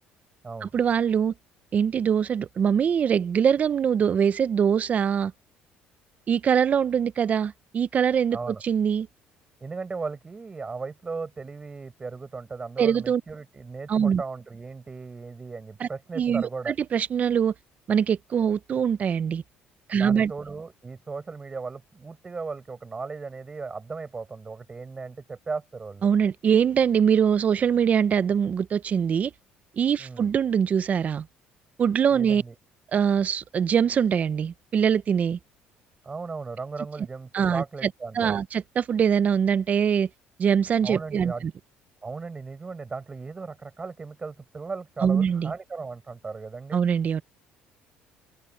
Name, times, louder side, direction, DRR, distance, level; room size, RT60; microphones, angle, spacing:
voice 1, 0.6-1.3 1.7-5.3 6.3-9.1 12.8-13.2 13.9-14.2 15.8-15.9 16.2-17.5 17.9-19.4 19.9-20.3 26.0-29.3 29.8-31.3 31.8-32.4 32.9-35.4 37.3-37.9 38.1-40.1 40.4-41.5 45.0-45.5 46.7-47.2, right 7 dB, 40° right, 0.7 m, -23 dB
voice 2, 9.6-16.7 20.0-26.1 30.0-30.3 32.1-32.5 36.0-38.4 40.8-41.5 42.0-46.8, right 4 dB, 25° right, 5.5 m, -36 dB
open air
cardioid pair, 105°, 4 cm